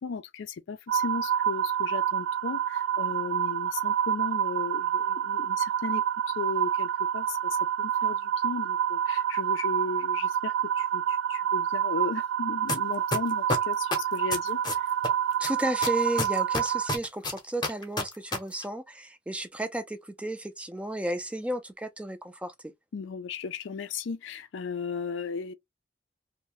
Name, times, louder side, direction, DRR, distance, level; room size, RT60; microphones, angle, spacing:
voice 1, 0.0-14.9 22.9-25.5, left 5 dB, 80° left, 0.4 m, -36 dB
sound 1, 0.9-17.0, right 9 dB, 80° right, 0.4 m, -28 dB
sound 2, 12.7-12.8 13.1-15.1 15.4-18.4 18.6-18.7, left 2 dB, 20° left, 0.7 m, -28 dB
voice 2, 15.4-22.7, right 1 dB, 5° right, 0.3 m, -33 dB
2.7 x 2.1 x 2.9 m
head